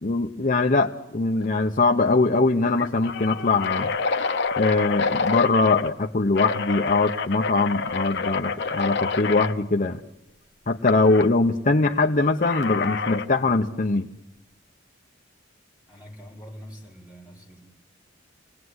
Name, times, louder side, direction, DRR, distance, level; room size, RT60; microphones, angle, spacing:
voice 1, 0.0-3.9 4.6-10.0 10.7-14.1, left 3 dB, 45° left, 0.9 m, -22 dB
sound 1, 1.4-1.7 2.0-2.1 2.6-5.9 6.3-9.5 10.9-11.3 12.4-13.3, left 4 dB, 60° left, 1.1 m, -28 dB
voice 2, 15.9-17.6, equal, 10° right, 5.5 m, -44 dB
28.5 x 19.5 x 9.7 m
head